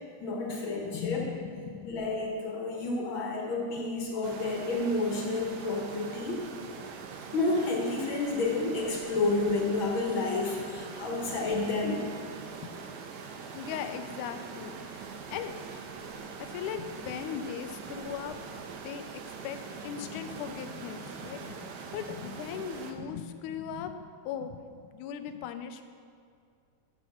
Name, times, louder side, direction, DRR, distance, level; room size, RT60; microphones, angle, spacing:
voice 1, 0.2-1.3 1.8-6.5 7.3-12.0, left 3 dB, 55° left, -1 dB, 1.7 m, -30 dB
voice 2, 0.8-2.0 9.1-9.2 12.6-12.7 13.5-15.6 16.4-18.4 18.8-24.6 24.9-25.8, left 8 dB, 90° left, 8 dB, 2.1 m, -38 dB
sound 1, 4.2-22.9, right 5 dB, 80° right, 2.1 m, -43 dB
7.8 x 7.4 x 6.4 m, 2.3 s
omnidirectional pair, 3.4 m